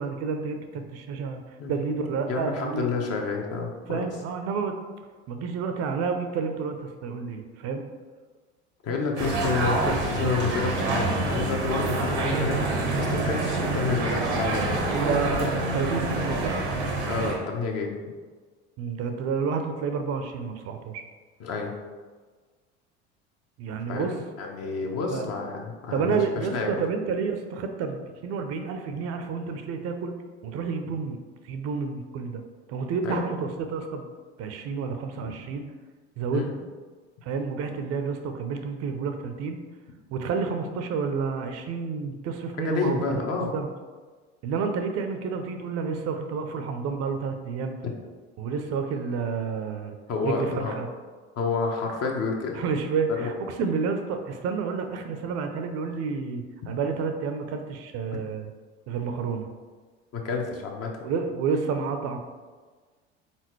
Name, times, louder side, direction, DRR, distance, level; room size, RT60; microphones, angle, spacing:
voice 1, 0.0-2.9 3.9-4.8 5.3-7.8 14.9-16.6 18.8-21.0 23.6-24.1 25.1-25.3 25.9-30.1 30.4-31.2 31.4-32.4 32.7-34.1 34.4-35.6 36.2-36.4 37.2-39.6 40.1-43.3 43.5-43.7 44.4-47.8 48.4-50.0 50.2-50.9 52.6-58.5 58.9-59.5 61.0-62.2, right 5 dB, 50° right, 6 dB, 0.6 m, -30 dB
voice 2, 2.3-4.0 8.8-15.1 17.0-18.0 21.4-21.7 23.9-26.2 26.5-26.7 30.8-30.9 33.0-33.3 35.1-35.3 36.3-36.5 42.6-43.5 50.1-50.8 51.4-52.6 53.2-53.3 56.6-56.7 60.1-60.9, left 4 dB, 45° left, 1 dB, 0.9 m, -29 dB
sound 1, 9.2-17.3, right 2 dB, 85° right, 0.9 m, -27 dB
4.2 x 3.8 x 3.1 m, 1.4 s
hypercardioid pair, 70°, 33 cm